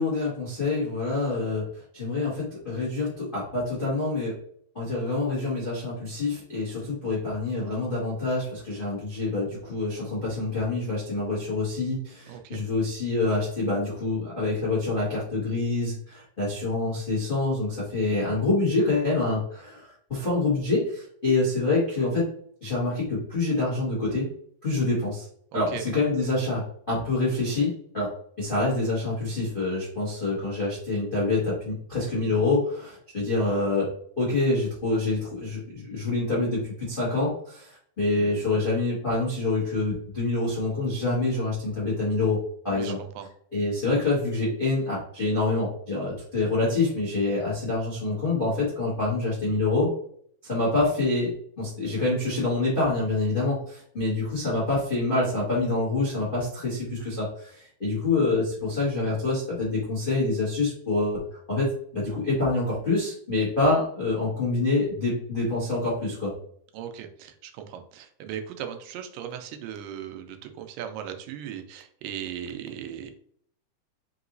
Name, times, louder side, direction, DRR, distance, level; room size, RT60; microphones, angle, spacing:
voice 1, 0.0-1.6 1.9-4.3 4.7-22.3 22.6-24.3 24.6-25.3 25.5-28.1 28.4-33.9 34.2-43.0 43.5-49.9 50.5-51.3 51.6-61.2 61.5-66.3, left 2 dB, 85° left, -7 dB, 0.4 m, -26 dB
voice 2, 12.3-12.6 25.5-25.8 42.7-43.3 66.7-73.1, right 9 dB, 90° right, 6 dB, 2.3 m, -38 dB
5.4 x 2.9 x 2.6 m, 0.62 s
omnidirectional pair, 3.8 m